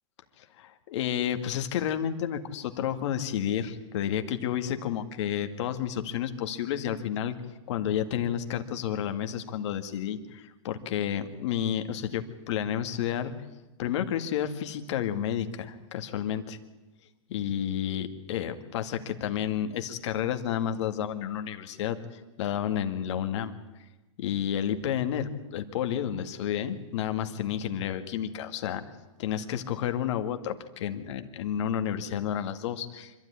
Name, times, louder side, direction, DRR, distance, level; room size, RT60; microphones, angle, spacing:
voice 1, 0.4-7.4 7.7-13.3 13.8-16.6 17.3-23.5 24.2-28.8 29.2-33.1, left 9 dB, 60° left, 7 dB, 2.1 m, -31 dB
25.5 x 13.0 x 9.8 m, 1.1 s
hypercardioid pair, 130°, 17 cm